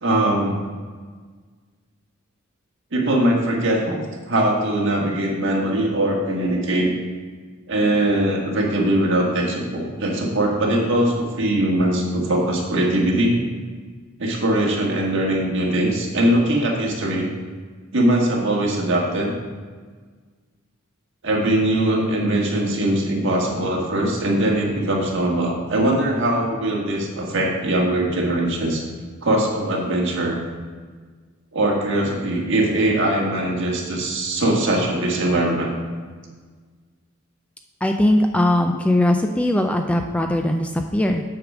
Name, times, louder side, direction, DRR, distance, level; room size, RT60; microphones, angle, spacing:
voice 1, 0.0-0.6 2.9-6.9 7.7-13.4 14.2-17.3 17.9-19.4 21.2-28.8 29.2-30.4 31.5-35.7, right 1 dB, 60° right, -2 dB, 1.7 m, -21 dB
voice 2, 37.8-41.2, left 1 dB, 5° left, 4 dB, 0.3 m, -20 dB
8.2 x 4.9 x 6.1 m, 1.5 s
head